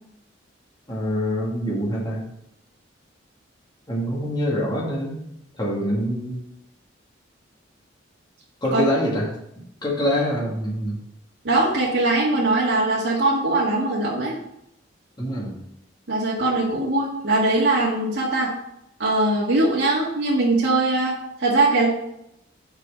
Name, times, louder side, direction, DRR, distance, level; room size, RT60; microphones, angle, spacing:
voice 1, 0.9-2.2 3.9-5.1 5.6-6.3 8.6-9.3 9.8-11.0 15.2-15.5, equal, 20° left, -4 dB, 2.0 m, -25 dB
voice 2, 11.4-14.3 16.1-18.5 19.0-21.9, right 2 dB, 70° right, -6 dB, 1.8 m, -21 dB
6.7 x 4.7 x 6.2 m, 0.78 s
head